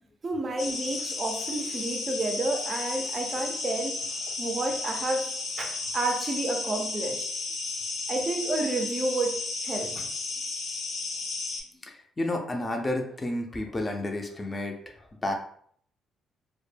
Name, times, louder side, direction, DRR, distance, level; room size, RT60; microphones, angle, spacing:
voice 1, 0.2-4.0 4.4-5.3 5.6-7.3 8.1-10.1, right 2 dB, 35° right, 0.5 m, -30 dB
sound 1, 0.6-11.6, left 3 dB, 70° left, 0.7 m, -33 dB
voice 2, 11.8-15.3, left 1 dB, 25° left, 0.4 m, -31 dB
2.1 x 2.1 x 3.2 m
cardioid pair, 90°, 0 cm